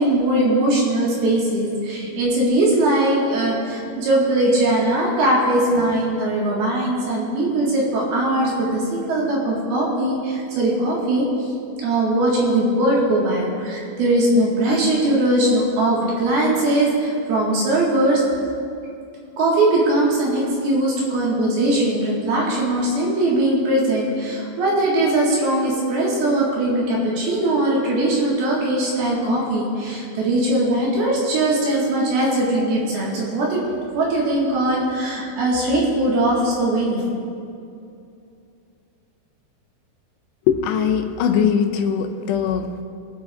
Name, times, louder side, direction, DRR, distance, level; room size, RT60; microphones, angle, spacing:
voice 1, 0.0-11.3 11.8-18.2 19.4-33.6 34.0-37.0, right 1 dB, 70° right, -4 dB, 3.6 m, -20 dB
voice 2, 40.5-42.8, left 7 dB, 90° left, 6 dB, 2.9 m, -21 dB
24.0 x 8.2 x 2.5 m, 2.6 s
omnidirectional pair, 4.8 m